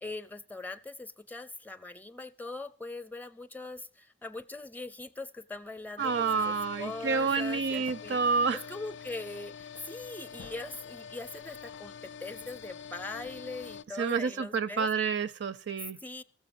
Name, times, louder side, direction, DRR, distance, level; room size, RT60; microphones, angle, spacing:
voice 1, 0.0-14.9 16.0-16.2, left 2 dB, 10° left, 0.5 m, -41 dB
sound 1, 6.0-13.8, left 7 dB, 90° left, 0.5 m, -45 dB
voice 2, 6.0-8.6 14.0-16.0, right 5 dB, 70° right, 0.5 m, -29 dB
14.5 x 7.6 x 6.9 m
head